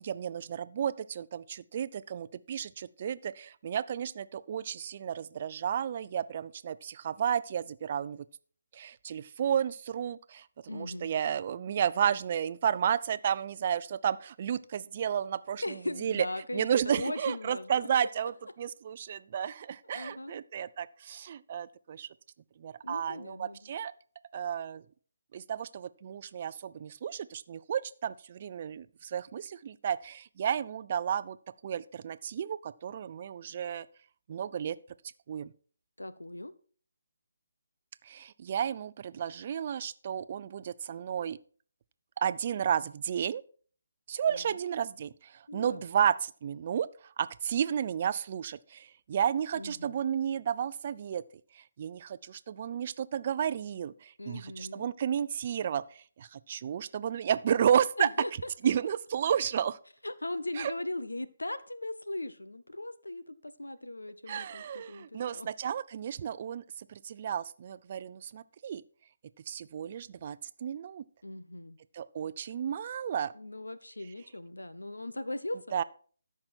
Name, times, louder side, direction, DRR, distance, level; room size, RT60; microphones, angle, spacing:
voice 1, 0.0-8.2 8.7-10.4 10.7-16.3 16.5-18.3 18.6-22.1 22.6-23.9 24.3-24.8 25.3-31.4 31.6-33.9 34.3-34.8 35.3-35.5 38.1-41.4 42.2-43.4 44.1-46.9 47.2-51.2 51.8-58.1 58.6-59.8 60.6-60.7 64.3-66.6 66.9-68.8 69.5-71.0 71.9-73.3 75.7-75.8, right 8 dB, 40° right, 0.5 m, -32 dB
voice 2, 10.7-11.1 15.6-17.9 19.4-19.5 19.9-20.4 22.8-23.7 36.0-36.5 44.3-44.6 45.5-45.8 49.6-50.0 54.2-54.9 58.0-58.7 60.0-65.5 71.2-71.8 73.3-75.6, left 1 dB, 90° left, 0.9 m, -39 dB
13.5 x 6.0 x 4.4 m
figure-of-eight pair, 150°, 0 cm